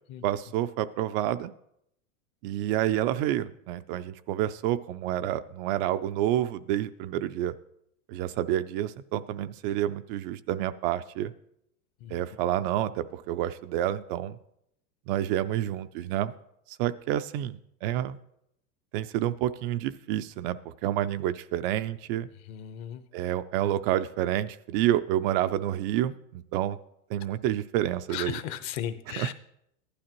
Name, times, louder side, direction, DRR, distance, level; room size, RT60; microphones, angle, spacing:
voice 1, 0.2-1.5 2.4-7.5 8.1-11.3 12.1-14.4 15.1-16.3 16.7-18.2 18.9-22.3 23.1-26.8 27.1-28.4 29.2-29.3, right 12 dB, 45° right, 12 dB, 0.4 m, -29 dB
voice 2, 22.5-23.0 28.1-29.3, left 10 dB, 40° left, 11 dB, 0.9 m, -36 dB
15.0 x 11.5 x 3.0 m, 0.76 s
supercardioid pair, 130°, 41 cm